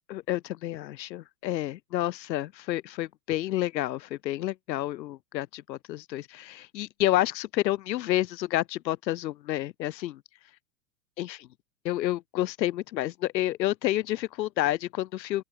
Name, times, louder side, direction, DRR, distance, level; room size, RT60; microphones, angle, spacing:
voice 1, 0.1-10.2 11.2-11.5 11.8-15.4, left 14 dB, 85° left, 0.6 m, -29 dB
open air
hypercardioid pair, 105°, 50 cm